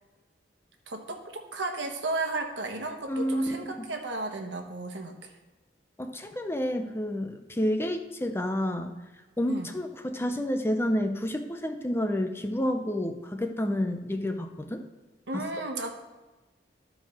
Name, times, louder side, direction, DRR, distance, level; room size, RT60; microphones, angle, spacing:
voice 1, 0.9-5.3 9.5-9.7 15.3-15.9, right 2 dB, 90° right, 3 dB, 1.2 m, -34 dB
voice 2, 3.1-3.6 6.0-8.9 9.4-14.8 15.3-15.4, equal, 15° left, 6 dB, 0.6 m, -29 dB
12.0 x 4.6 x 4.3 m, 1.2 s
head